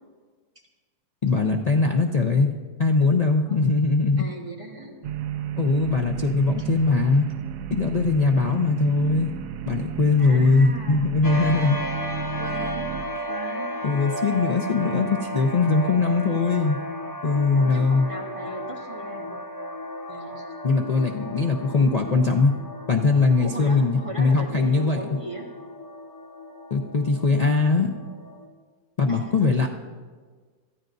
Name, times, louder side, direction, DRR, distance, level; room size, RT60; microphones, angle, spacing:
voice 1, 1.2-2.5 2.8-4.3 5.6-7.3 7.7-9.3 9.7-11.8 13.8-16.8 17.2-18.1 20.6-22.5 22.9-25.0 26.7-27.9 29.0-29.7, left 4 dB, 75° left, 1 dB, 0.3 m, -21 dB
voice 2, 4.2-5.0 6.6-6.7 10.2-11.7 12.4-13.8 17.5-19.4 20.1-20.4 23.4-25.5 29.1-29.7, right 1 dB, 20° right, -2 dB, 1.6 m, -38 dB
sound 1, 5.0-13.0, right 9 dB, 90° right, 1.2 m, -33 dB
sound 2, 11.2-28.5, equal, 15° left, 0.8 m, -35 dB
21.0 x 13.5 x 2.6 m, 1.5 s
omnidirectional pair, 1.7 m